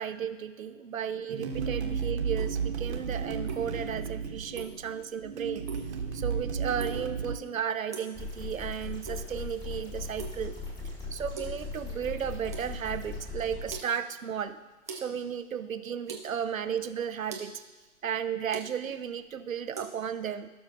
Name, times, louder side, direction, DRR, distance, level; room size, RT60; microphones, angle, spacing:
voice 1, 0.0-5.6 6.1-10.5 11.1-14.6 14.9-17.6 18.0-20.5, right 8 dB, 90° right, 11 dB, 0.7 m, -34 dB
sound 1, 1.3-7.3, right 6 dB, 55° right, 1.2 m, -33 dB
sound 2, 2.3-19.9, right 4 dB, 15° right, 0.3 m, -47 dB
sound 3, 8.1-13.7, left 3 dB, 10° left, 2.3 m, -39 dB
16.5 x 6.1 x 2.5 m, 1.2 s
hypercardioid pair, 130°, 40 cm